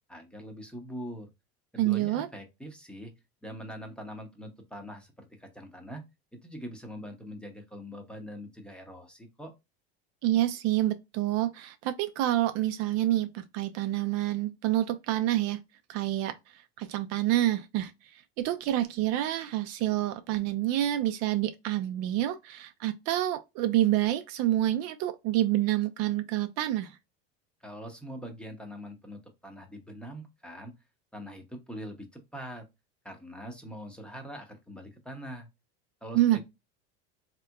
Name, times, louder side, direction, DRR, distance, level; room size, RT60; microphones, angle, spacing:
voice 1, 0.1-1.3 1.7-3.1 3.4-6.0 6.3-9.5 27.6-30.7 31.1-32.6 33.0-35.5 36.0-36.4, equal, 5° left, 0.7 m, -43 dB
voice 2, 1.8-2.3 10.2-15.6 15.9-27.0 36.1-36.4, right 14 dB, 55° right, 0.4 m, -28 dB
3.3 x 2.9 x 2.2 m
supercardioid pair, 130°, 31 cm